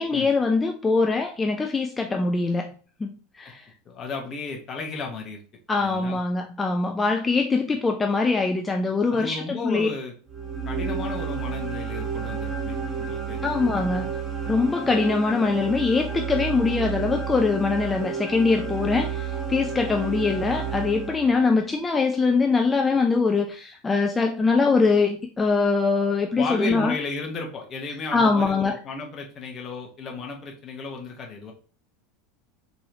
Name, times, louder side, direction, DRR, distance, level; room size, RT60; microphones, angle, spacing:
voice 1, 0.0-2.7 3.0-3.6 5.7-9.9 13.4-14.1 14.5-26.9 28.1-28.7, left 4 dB, 15° left, 3 dB, 0.5 m, -23 dB
voice 2, 3.8-5.4 5.8-6.2 9.1-10.1 10.7-13.4 13.7-13.8 26.3-31.5, left 3 dB, 35° left, 1 dB, 1.1 m, -34 dB
sound 1, 10.3-21.6, right 6 dB, 25° right, 1.0 m, -31 dB
4.6 x 3.0 x 2.6 m, 0.40 s
figure-of-eight pair, 80°, 0 cm